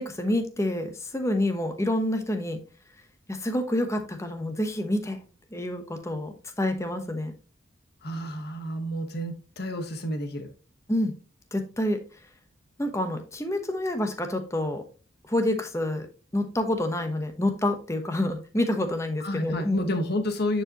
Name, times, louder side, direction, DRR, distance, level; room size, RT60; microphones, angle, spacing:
voice 1, 0.0-2.6 3.3-5.2 5.5-7.4 10.9-11.1 11.5-12.0 12.8-14.8 15.2-16.1 16.3-19.8, left 1 dB, 15° left, 6 dB, 1.0 m, -28 dB
voice 2, 8.0-10.5 19.2-20.6, left 1 dB, 55° left, 6 dB, 1.3 m, -30 dB
9.5 x 4.8 x 2.9 m, 0.34 s
head